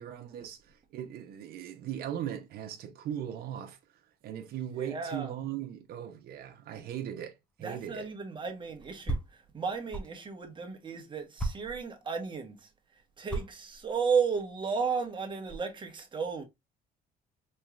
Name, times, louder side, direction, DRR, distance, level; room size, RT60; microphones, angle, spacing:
voice 1, 0.0-3.8 4.2-8.1, right 10 dB, 65° right, 0.8 m, -38 dB
voice 2, 4.7-5.3 7.6-12.7 13.2-16.4, right 5 dB, 30° right, 1.1 m, -34 dB
sound 1, 7.4-7.6 7.9-10.1 10.6-10.7 11.4-12.2 13.2-15.7, right 2 dB, 5° left, 0.8 m, -37 dB
4.4 x 3.1 x 2.4 m
cardioid pair, 110°, 17 cm